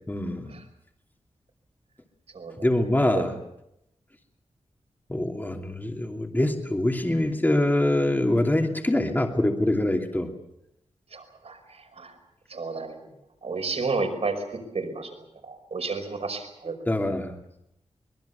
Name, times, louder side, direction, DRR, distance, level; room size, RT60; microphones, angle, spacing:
voice 1, 0.1-0.5 2.6-3.3 5.1-10.3 16.8-17.4, left 1 dB, 15° left, 3 dB, 2.8 m, -24 dB
voice 2, 2.3-2.7 3.1-3.2 11.1-12.1 12.5-13.1 13.4-14.4 14.7-15.1 15.4-16.7, right 4 dB, 70° right, 5 dB, 5.5 m, -31 dB
25.0 x 21.0 x 7.1 m, 0.82 s
wide cardioid pair, 80°, 11 cm